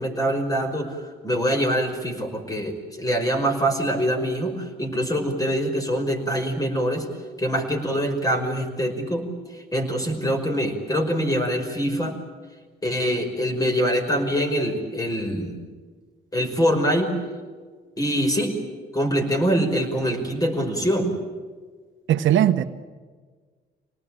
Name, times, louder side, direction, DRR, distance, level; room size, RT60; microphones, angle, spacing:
voice 1, 0.0-7.1 7.4-9.3 9.5-12.1 12.8-15.6 16.3-17.2 18.0-18.5 18.9-21.1, equal, 15° left, 5.5 m, -24 dB
voice 2, 22.1-22.6, right 11 dB, 75° right, 1.1 m, -18 dB
26.0 x 19.0 x 9.0 m
cardioid pair, 90°, 20 cm